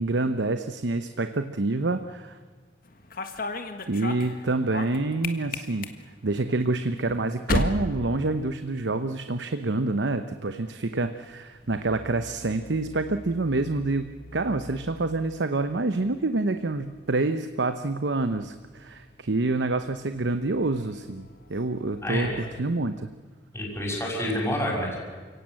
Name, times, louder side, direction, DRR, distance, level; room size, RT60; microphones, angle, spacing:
voice 1, 0.0-2.4 3.9-5.9 6.2-23.1, right 2 dB, 85° right, 9 dB, 0.9 m, -27 dB
sound 1, 2.8-9.0 9.3-9.8 10.9-22.6, left 2 dB, 55° left, 1.7 m, -38 dB
voice 2, 22.0-22.4 23.5-25.0, left 1 dB, 15° left, -1 dB, 6.0 m, -28 dB
29.0 x 17.5 x 7.7 m, 1.5 s
head